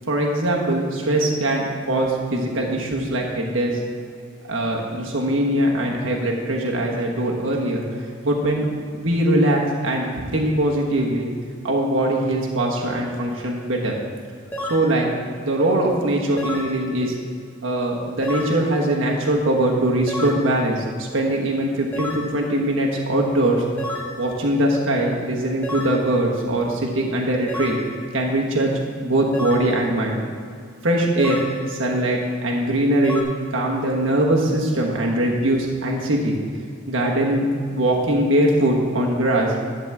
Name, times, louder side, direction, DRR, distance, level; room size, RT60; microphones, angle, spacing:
voice 1, 0.1-3.8 4.5-8.7 9.0-11.3 11.6-14.0 14.6-15.1 15.4-17.2 17.6-23.6 24.2-27.8 28.1-28.7 29.0-30.2 30.8-33.2 33.5-36.3 36.9-39.5, right 1 dB, 80° right, -1 dB, 1.3 m, -21 dB
sound 1, 14.5-14.9 16.4-16.7 18.2-18.6 20.1-20.4 21.9-22.3 23.8-24.2 25.6-26.0 27.5-27.9 29.3-29.7 31.2-31.6 33.0-33.2, left 1 dB, 10° left, 1.4 m, -29 dB
12.0 x 4.1 x 7.3 m, 2.3 s
head